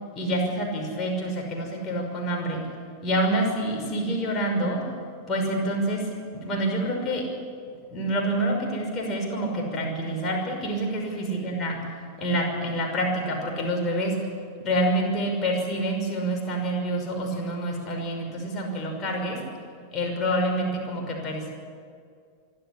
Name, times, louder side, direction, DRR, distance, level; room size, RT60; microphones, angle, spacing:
voice 1, 0.2-2.7 3.0-4.9 5.3-7.3 7.9-11.8 12.2-14.2 14.6-19.4 19.9-21.5, right 1 dB, 30° left, 1 dB, 5.8 m, -27 dB
25.0 x 12.5 x 9.9 m, 2.2 s
figure-of-eight pair, 90°, 0 cm